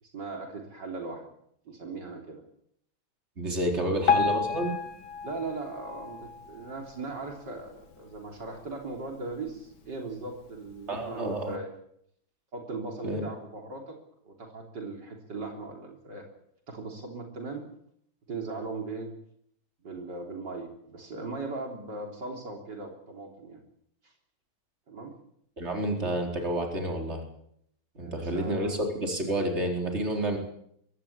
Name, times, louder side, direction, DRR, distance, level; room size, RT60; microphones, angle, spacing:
voice 1, 0.0-1.3 1.7-2.4 3.8-4.0 5.2-11.7 12.5-14.0 14.2-16.3 16.7-17.7 18.3-19.1 19.8-23.6 24.9-25.2 28.0-28.8, right 3 dB, 75° right, 2 dB, 4.1 m, -38 dB
voice 2, 3.4-4.8 10.9-11.5 13.0-13.2 25.6-27.2 28.0-30.4, right 1 dB, 35° right, 3 dB, 4.5 m, -29 dB
Piano, 4.1-7.2 7.7-7.8 8.1-8.2 9.0-9.1 9.6-9.7, left 6 dB, 70° left, 2.2 m, -30 dB
23.0 x 17.0 x 8.6 m, 0.71 s
omnidirectional pair, 1.9 m